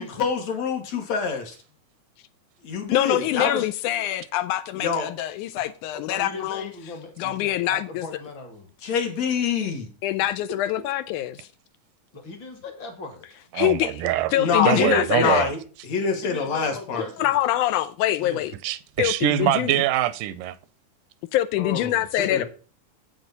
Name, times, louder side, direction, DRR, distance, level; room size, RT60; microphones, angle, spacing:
voice 1, 0.0-1.6 2.6-3.6 4.8-5.1 8.8-9.9 14.4-15.6 15.8-17.1 21.6-22.0 22.3-22.5, left 5 dB, 60° left, 2.7 m, -26 dB
voice 2, 2.9-6.7 7.2-8.1 10.0-11.4 13.6-14.0 14.3-15.5 17.2-18.5 19.0-19.7 21.3-22.4, left 13 dB, 80° left, 2.0 m, -24 dB
voice 3, 6.1-8.7 12.1-13.2 16.2-17.4 18.2-18.5 22.2-22.4, left 2 dB, 45° left, 2.1 m, -38 dB
voice 4, 13.5-14.3 14.6-15.5 18.6-20.6, right 13 dB, 85° right, 2.2 m, -24 dB
9.1 x 7.9 x 4.1 m
omnidirectional pair, 3.6 m